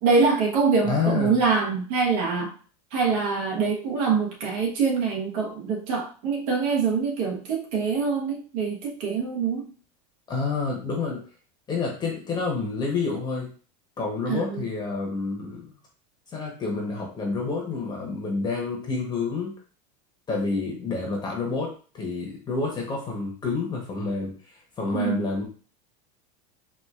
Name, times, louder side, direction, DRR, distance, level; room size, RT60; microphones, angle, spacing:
voice 1, 0.0-2.5 2.9-9.7 14.3-14.7 24.9-25.2, right 5 dB, 65° right, 0 dB, 1.2 m, -24 dB
voice 2, 0.8-1.4 10.3-11.2 11.7-13.5 14.0-15.7 16.3-19.5 20.3-25.4, left 4 dB, 20° left, -1 dB, 0.9 m, -28 dB
4.3 x 2.5 x 2.4 m, 0.38 s
supercardioid pair, 145°, 20 cm